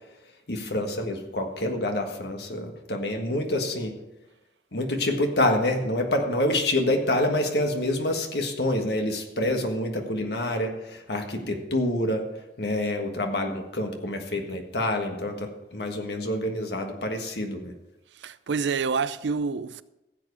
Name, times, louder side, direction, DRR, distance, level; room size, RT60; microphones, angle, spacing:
voice 1, 0.5-4.0 4.7-12.3 12.6-17.7, left 1 dB, 70° left, 1.6 m, -27 dB
voice 2, 18.2-19.8, right 5 dB, 85° right, 0.5 m, -27 dB
15.5 x 7.9 x 4.9 m
head